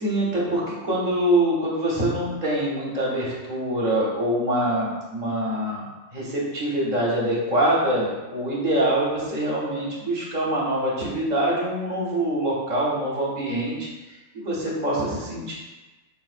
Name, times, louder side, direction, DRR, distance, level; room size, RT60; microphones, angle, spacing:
voice 1, 0.0-5.8 6.1-15.5, right 1 dB, 40° right, -5 dB, 0.8 m, -24 dB
4.1 x 2.0 x 2.4 m, 1.1 s
omnidirectional pair, 1.3 m